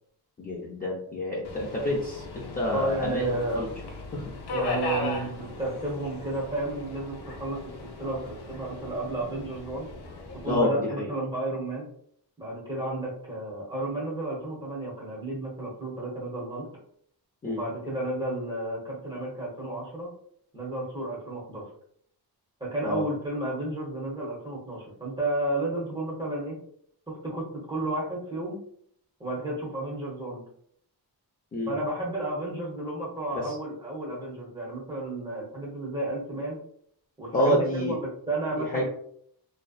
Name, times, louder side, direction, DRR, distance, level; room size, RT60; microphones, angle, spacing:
voice 1, 0.4-3.7 4.1-4.2 10.5-11.1 17.4-17.6 22.8-23.0 31.5-31.7 33.3-33.5 37.3-38.0 38.6-38.8, left 1 dB, 20° left, -6 dB, 0.5 m, -28 dB
Subway metro underground, 1.4-10.6, left 3 dB, 70° left, 0.6 m, -38 dB
voice 2, 2.7-3.6 4.5-9.9 10.4-11.9 12.4-16.7 17.4-20.1 20.5-21.6 22.6-26.6 27.1-28.6 29.2-30.4 31.7-36.6 37.2-38.8, right 2 dB, 10° right, -5 dB, 0.9 m, -32 dB
2.6 x 2.0 x 2.3 m, 0.65 s
wide cardioid pair, 120°, 40 cm